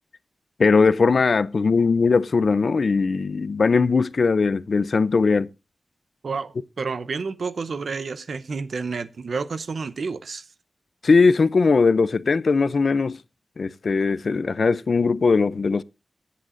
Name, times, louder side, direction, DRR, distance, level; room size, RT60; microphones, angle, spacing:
voice 1, 0.6-5.5 11.0-13.2 13.6-15.8, left 4 dB, 70° left, 0.5 m, -19 dB
voice 2, 6.2-10.5, right 4 dB, 80° right, 0.8 m, -30 dB
22.5 x 8.5 x 2.5 m
wide cardioid pair, 75°, 0 cm